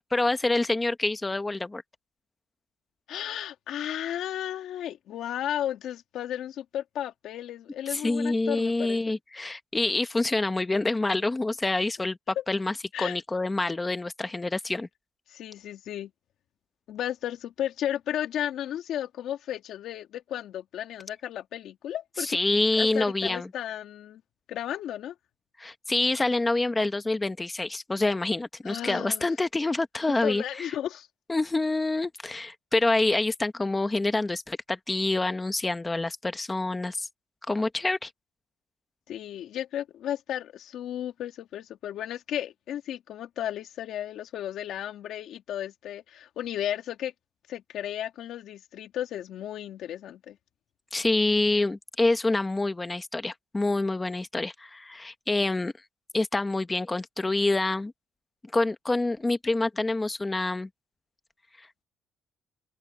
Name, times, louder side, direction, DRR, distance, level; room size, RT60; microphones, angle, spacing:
voice 1, 0.1-1.8 7.9-12.2 12.5-14.9 22.2-23.5 25.6-30.7 31.3-37.1 37.5-38.1 50.9-55.7 56.1-57.9 58.5-60.7, left 2 dB, 10° left, 1.2 m, -27 dB
voice 2, 3.1-9.2 12.4-12.5 12.9-13.2 15.3-16.1 16.9-22.4 22.8-24.2 24.5-25.1 28.6-29.3 30.1-31.1 39.1-47.1 47.5-50.4, left 11 dB, 55° left, 2.6 m, -34 dB
open air
cardioid pair, 170°, 0 cm